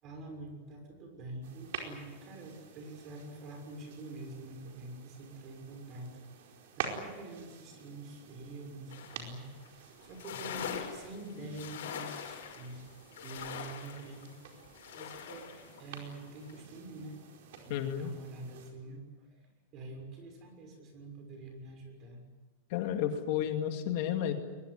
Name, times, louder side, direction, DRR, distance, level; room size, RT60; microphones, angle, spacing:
voice 1, 0.0-6.1 6.4-6.5 6.8-12.8 13.2-14.3 14.9-17.2 17.6-19.4 19.7-22.2, right 2 dB, 30° right, 4 dB, 6.3 m, -46 dB
sound 1, 1.4-18.7, right 7 dB, 65° right, 4.8 m, -48 dB
sound 2, 8.9-9.3 9.6-9.7 10.0-15.8 16.2-16.6, left 8 dB, 85° left, 5.6 m, -43 dB
voice 2, 17.7-18.1 22.7-24.3, left 10 dB, 50° left, 5 dB, 2.3 m, -32 dB
22.5 x 21.5 x 9.8 m, 1.3 s
supercardioid pair, 170°, 0 cm